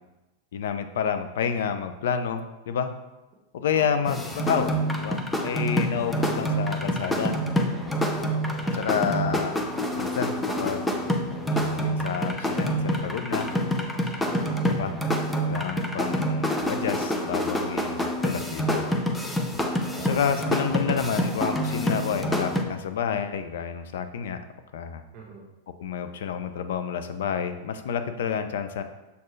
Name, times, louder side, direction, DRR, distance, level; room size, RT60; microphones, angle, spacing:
voice 1, 0.5-2.9 3.5-7.4 8.7-9.6 9.9-11.0 11.6-13.5 14.7-14.9 15.4-18.9 20.0-24.4 24.7-25.0 25.8-28.8, left 7 dB, 75° left, 9 dB, 0.6 m, -29 dB
voice 2, 3.7-4.1 8.4-9.2 14.2-14.7 19.9-20.3 25.1-25.5, right 3 dB, 40° right, -2 dB, 1.2 m, -42 dB
sound 1, 4.0-22.6, equal, 5° left, 0.5 m, -27 dB
6.8 x 4.4 x 3.2 m, 1.0 s
supercardioid pair, 155°, 0 cm